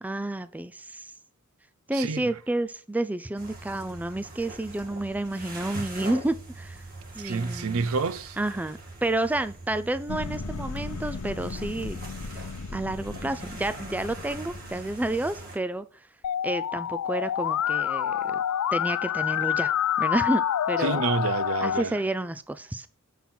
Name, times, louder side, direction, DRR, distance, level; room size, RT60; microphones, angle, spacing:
voice 1, 0.0-1.1 1.9-6.8 7.1-7.9 8.4-12.0 12.3-12.4 12.7-15.9 16.4-18.4 18.7-19.7 20.0-21.0 21.6-22.9, right 1 dB, 5° right, 0.3 m, -30 dB
sound 1, 3.4-15.6, right 2 dB, 40° right, 2.4 m, -42 dB
voice 2, 7.2-8.4 20.8-21.9, right 4 dB, 65° right, 0.5 m, -28 dB
sound 2, 10.1-15.5, left 3 dB, 90° left, 0.7 m, -38 dB
Musical instrument, 16.2-21.8, left 10 dB, 70° left, 0.3 m, -27 dB
7.5 x 5.6 x 4.3 m
head